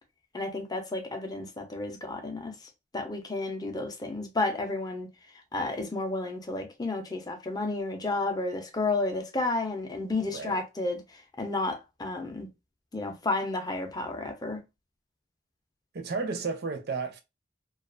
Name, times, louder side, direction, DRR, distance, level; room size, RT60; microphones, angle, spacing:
voice 1, 0.3-2.5 2.9-5.1 5.5-11.0 11.4-12.5 12.9-14.6, left 2 dB, 20° left, 0.5 m, -31 dB
voice 2, 10.2-10.6 15.9-17.2, right 4 dB, 55° right, 0.5 m, -33 dB
2.4 x 2.3 x 2.4 m
head